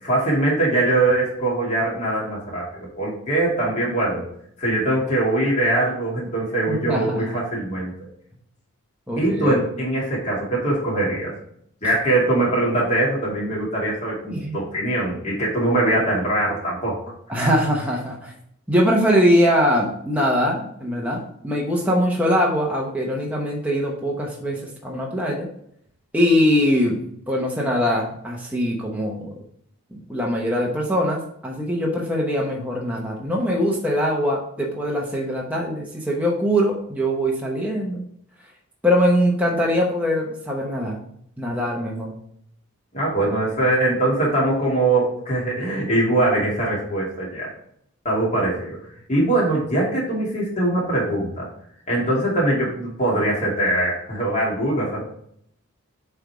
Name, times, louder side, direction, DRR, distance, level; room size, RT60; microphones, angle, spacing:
voice 1, 0.0-4.2 4.6-7.9 9.2-11.3 11.8-17.0 42.9-47.5 48.0-48.8 49.1-51.5 51.9-55.0, right 2 dB, 30° left, -5 dB, 2.3 m, -22 dB
voice 2, 6.7-7.4 9.1-9.6 14.3-14.6 17.3-18.3 18.7-25.5 26.1-29.3 29.9-38.0 38.8-41.0 41.4-42.1, equal, 5° right, -2 dB, 0.9 m, -22 dB
7.6 x 3.5 x 4.7 m, 0.69 s
head